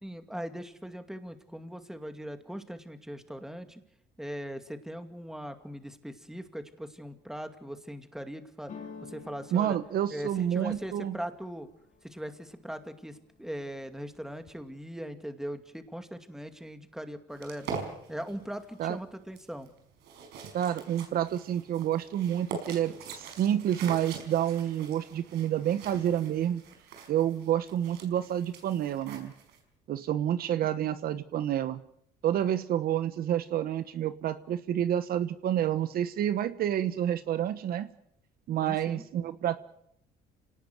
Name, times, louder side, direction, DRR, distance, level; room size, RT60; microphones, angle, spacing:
voice 1, 0.0-3.8 4.2-8.7 9.0-9.8 10.1-11.7 12.0-17.7 18.1-19.7 38.6-39.0, equal, 5° right, 8 dB, 2.3 m, -40 dB
sound 1, 8.7-12.5 13.0-13.6 13.9-14.7, left 5 dB, 45° left, 5.4 m, -50 dB
voice 2, 9.5-11.1 18.8-19.0 20.5-26.6 27.1-29.3 29.9-31.8 32.2-37.9 38.5-39.6, right 10 dB, 65° right, 12 dB, 1.2 m, -29 dB
sound 2, 17.4-29.6, right 5 dB, 80° right, 5.2 m, -44 dB
27.5 x 18.5 x 7.9 m, 0.73 s
cardioid pair, 110°, 17 cm